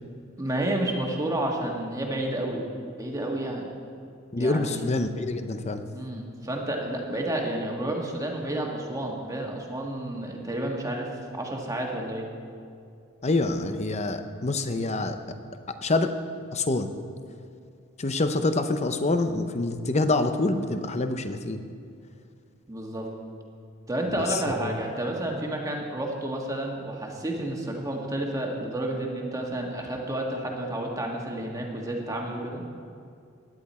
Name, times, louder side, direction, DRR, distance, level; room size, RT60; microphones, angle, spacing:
voice 1, 0.4-2.6 3.0-3.7 4.4-4.9 5.9-12.3 22.7-23.1 23.9-32.6, right 1 dB, 15° right, 0 dB, 1.6 m, -30 dB
voice 2, 4.3-5.8 13.2-15.2 15.8-16.1 16.5-16.9 18.0-21.6 24.1-24.8, left 2 dB, 30° left, 8 dB, 0.7 m, -26 dB
17.5 x 10.5 x 4.3 m, 2.4 s
head